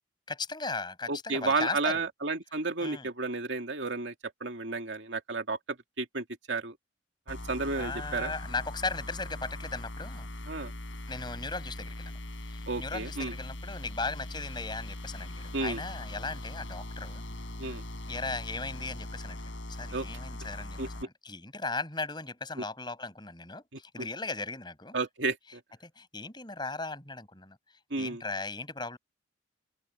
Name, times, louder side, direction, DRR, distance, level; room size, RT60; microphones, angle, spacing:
voice 1, 0.3-2.1 2.8-3.1 7.7-10.3 11.1-12.2 12.4-17.2 17.6-17.8 18.1-19.4 19.7-25.0 26.0-27.6 28.0-29.0, left 3 dB, 25° left, 7.5 m, -37 dB
voice 2, 1.1-4.1 4.4-5.6 6.0-6.8 7.3-8.3 10.5-10.7 12.7-13.3 15.5-15.8 17.6-17.8 19.9-20.1 20.8-20.9 22.6-22.7 24.0-24.1 24.9-25.6 27.9-28.2, right 3 dB, 70° right, 2.4 m, -32 dB
sound 1, 7.3-21.0, left 1 dB, 80° left, 6.1 m, -41 dB
head